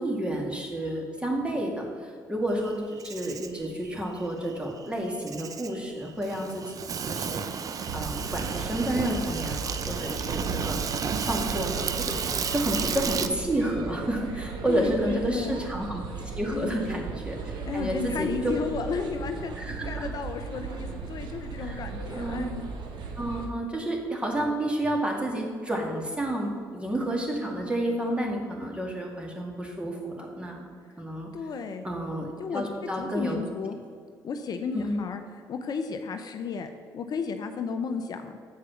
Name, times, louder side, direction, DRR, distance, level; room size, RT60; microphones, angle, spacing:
voice 1, 0.0-6.6 7.1-7.4 7.9-10.8 11.2-12.1 12.5-16.0 16.3-18.5 19.6-20.1 21.6-21.8 22.1-22.5 23.2-30.6 31.0-31.3 31.8-33.4 34.7-35.0, right 1 dB, 15° right, 0 dB, 2.1 m, -30 dB
Insect, 2.6-13.3, right 6 dB, 45° right, 0.6 m, -33 dB
sound 1, 7.8-23.5, right 4 dB, 65° right, 1.2 m, -36 dB
voice 2, 14.7-15.6 16.5-16.9 17.7-19.6 19.8-22.6 31.3-31.9 32.4-32.6 33.0-33.8 34.2-35.2 35.5-38.3, left 5 dB, 55° left, 7 dB, 0.6 m, -33 dB
7.5 x 4.7 x 7.0 m, 2.1 s
supercardioid pair, 65°, 8 cm